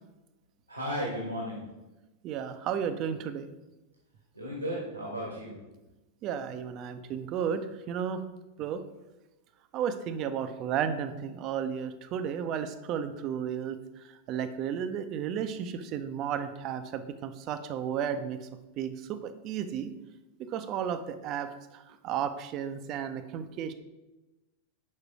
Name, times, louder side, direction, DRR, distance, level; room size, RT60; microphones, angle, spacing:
voice 1, 0.7-1.6 4.3-5.6, equal, 90° right, -2 dB, 1.5 m, -34 dB
voice 2, 2.2-3.5 6.2-8.2 8.6-8.8 9.7-18.5 18.8-19.9 20.4-23.7, right 8 dB, 35° right, 9 dB, 0.6 m, -33 dB
6.4 x 4.8 x 4.7 m, 1.1 s
figure-of-eight pair, 90°, 0 cm